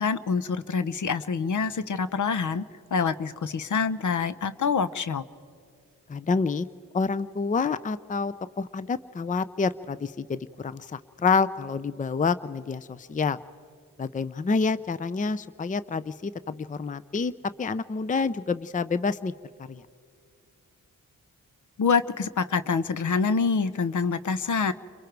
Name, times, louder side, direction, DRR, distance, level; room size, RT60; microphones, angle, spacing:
voice 1, 0.0-2.6 2.9-5.2 21.8-24.7, left 5 dB, 60° left, 14 dB, 0.9 m, -26 dB
voice 2, 6.1-6.7 6.9-13.4 14.0-17.3 17.6-19.3 19.7-19.8, left 4 dB, 25° left, 16 dB, 0.5 m, -28 dB
30.0 x 22.5 x 4.7 m, 2.3 s
cardioid pair, 50°, 34 cm